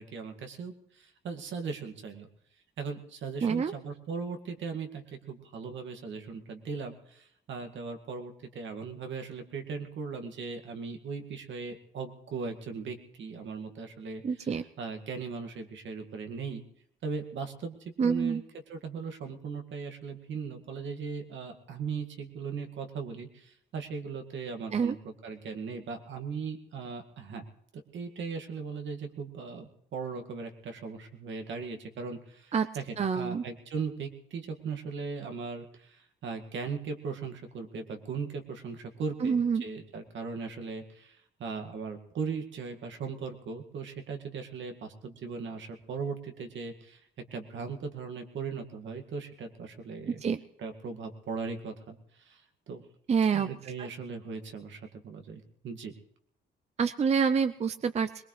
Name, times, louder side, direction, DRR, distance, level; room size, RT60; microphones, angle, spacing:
voice 1, 0.0-2.3 2.8-16.6 17.0-18.4 18.7-27.5 27.7-47.0 47.3-50.2 50.6-52.8 53.3-55.9, right 5 dB, 70° right, 5 dB, 2.0 m, -38 dB
voice 2, 3.4-3.7 14.2-14.6 18.0-18.4 24.7-24.9 32.5-32.7 33.0-33.4 39.2-39.6 50.2-50.4 53.1-53.5 53.8-53.9 56.8-58.2, right 6 dB, 35° right, 11 dB, 0.6 m, -27 dB
22.0 x 20.0 x 3.2 m, 0.73 s
cardioid pair, 90°, 20 cm